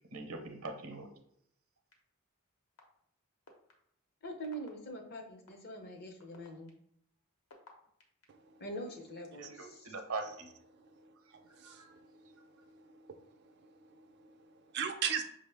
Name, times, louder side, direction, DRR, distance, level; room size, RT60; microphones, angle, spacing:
voice 1, 0.1-1.1 9.4-10.5 11.6-11.9, right 3 dB, 75° right, 0.7 m, -42 dB
sound 1, 1.9-2.0 2.8-2.9 3.5-3.7 4.4-4.7 5.5-5.6 6.2-8.2 8.9-9.7, left 3 dB, 80° left, 0.8 m, -58 dB
voice 2, 4.2-6.7 8.6-9.9, right 1 dB, 45° left, 0.6 m, -44 dB
voice 3, 10.9-15.2, right 7 dB, 50° right, 0.4 m, -41 dB
5.4 x 2.1 x 3.3 m
head